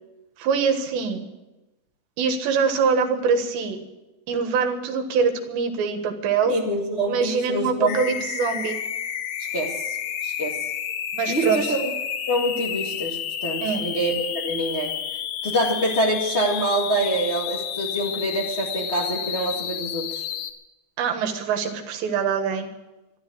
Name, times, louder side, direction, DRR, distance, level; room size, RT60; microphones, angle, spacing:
voice 1, 0.4-1.2 2.2-3.8 4.3-6.6 7.1-8.8 11.1-11.8 13.6-13.9 21.0-22.7, right 5 dB, 85° right, 5 dB, 3.8 m, -24 dB
voice 2, 6.4-8.0 9.4-9.9 10.2-10.6 11.3-11.9 12.3-15.0 15.4-20.2, right 1 dB, 35° left, -3 dB, 1.0 m, -26 dB
sound 1, 7.9-20.5, left 9 dB, 85° left, 3.2 m, -30 dB
13.5 x 12.5 x 8.5 m, 1.0 s
omnidirectional pair, 4.9 m